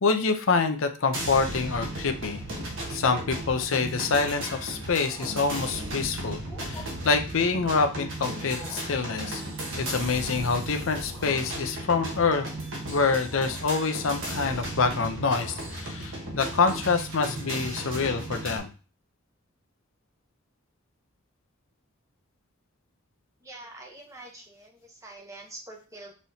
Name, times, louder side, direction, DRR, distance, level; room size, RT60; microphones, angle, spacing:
voice 1, 0.0-2.4 2.9-9.4 9.8-12.5 12.9-18.7, left 4 dB, 60° left, 7 dB, 0.6 m, -26 dB
sound 1, 1.1-18.6, right 1 dB, 60° right, 1.2 m, -35 dB
sound 2, 2.0-2.5 3.0-3.2 3.6-3.8 4.4-4.5 4.9-5.5 6.3-6.9 8.3-9.0 10.0-10.6 10.9-11.7 12.1-12.7 13.3-13.7 14.1-14.8 15.1-15.8, left 1 dB, 20° left, 1.1 m, -48 dB
voice 2, 23.4-26.1, right 2 dB, 15° right, 1 dB, 0.8 m, -45 dB
5.5 x 3.1 x 2.7 m, 0.35 s
head